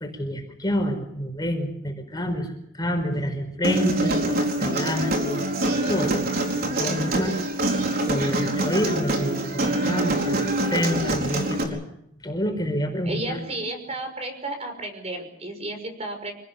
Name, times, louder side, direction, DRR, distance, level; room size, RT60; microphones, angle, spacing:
voice 1, 0.0-5.5 5.9-6.2 6.7-7.4 7.6-11.8 12.2-13.4, equal, 20° left, 4 dB, 5.0 m, -28 dB
Human voice, 3.6-11.6, right 1 dB, 50° right, 4.4 m, -25 dB
voice 2, 13.0-16.3, right 2 dB, 35° right, 6 dB, 5.9 m, -32 dB
27.5 x 18.5 x 7.1 m, 0.73 s
head